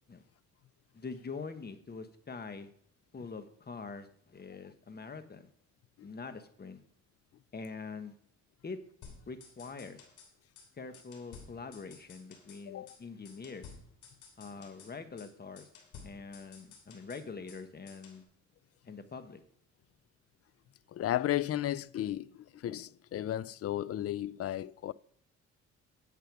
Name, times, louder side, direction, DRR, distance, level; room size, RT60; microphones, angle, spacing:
voice 1, 0.9-2.7 3.1-5.5 6.0-6.8 7.5-8.2 8.6-8.8 9.3-10.0 10.7-13.7 14.4-15.7 16.0-18.2 18.8-19.4, left 4 dB, 30° left, 1.3 m, -44 dB
sound 1, 9.0-10.3 10.6-10.7 10.9-12.6 12.9-13.0 13.2-14.9 15.2-15.3 15.6-17.6 17.9-18.2, left 5 dB, 80° left, 3.1 m, -53 dB
voice 2, 20.9-24.9, left 13 dB, 50° left, 0.5 m, -34 dB
11.0 x 8.1 x 4.7 m
cardioid pair, 90°, 30 cm